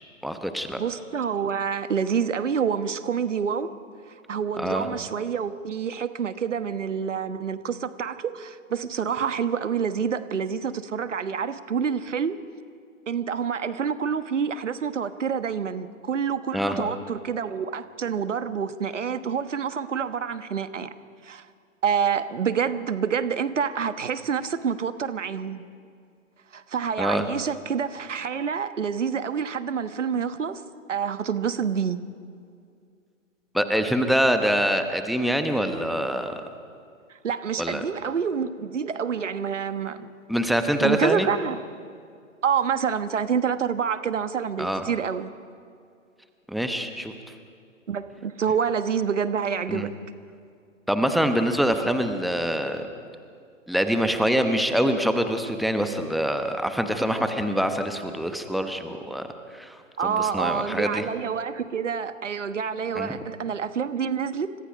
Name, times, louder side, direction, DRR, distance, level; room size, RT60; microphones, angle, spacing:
voice 1, 0.2-0.8 4.6-4.9 16.5-16.9 27.0-27.2 33.5-36.5 37.6-37.8 40.3-41.3 44.6-44.8 46.5-47.1 49.7-49.9 50.9-52.9 53.7-59.3 59.5-59.8 60.0-61.0 62.9-63.2, equal, ahead, 7 dB, 1.0 m, -25 dB
voice 2, 0.8-3.7 4.3-12.4 13.1-20.9 21.2-21.4 21.8-25.6 26.5-30.6 30.9-32.0 37.2-40.1 40.8-41.6 42.4-45.3 47.9-49.9 60.0-64.6, right 7 dB, 65° right, 12 dB, 1.4 m, -27 dB
30.0 x 25.5 x 5.2 m, 2.3 s
figure-of-eight pair, 120°, 39 cm